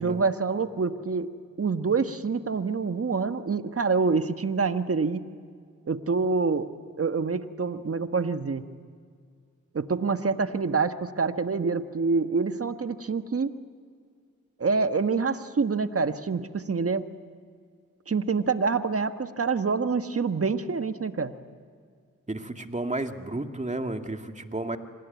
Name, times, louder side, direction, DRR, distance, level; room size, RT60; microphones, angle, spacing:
voice 1, 0.0-5.3 5.9-6.7 7.0-8.7 9.7-13.5 14.6-17.0 18.1-21.3, right 4 dB, 45° right, 9 dB, 1.5 m, -26 dB
voice 2, 22.3-24.8, right 2 dB, 20° right, 5 dB, 2.3 m, -32 dB
25.5 x 19.5 x 9.5 m, 2.1 s
cardioid pair, 45°, 32 cm